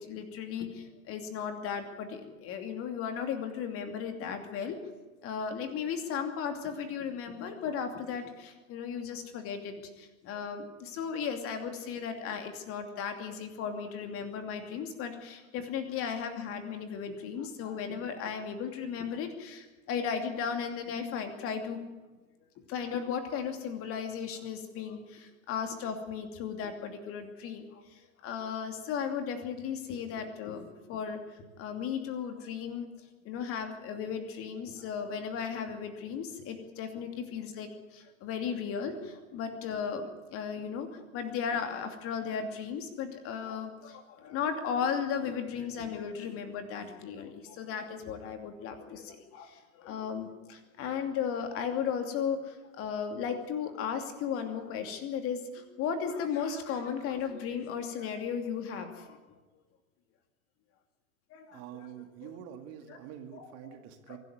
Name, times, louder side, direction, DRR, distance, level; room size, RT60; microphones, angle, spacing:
voice 1, 0.0-4.8 5.2-21.8 22.7-32.9 33.2-59.2 61.3-61.9 62.2-62.3 62.9-63.0 63.3-63.5 64.1-64.2, left 7 dB, 35° left, 6 dB, 2.7 m, -36 dB
voice 2, 61.5-64.2, right 10 dB, 35° right, 6 dB, 2.2 m, -46 dB
24.0 x 12.0 x 9.6 m, 1.2 s
figure-of-eight pair, 95°, 41 cm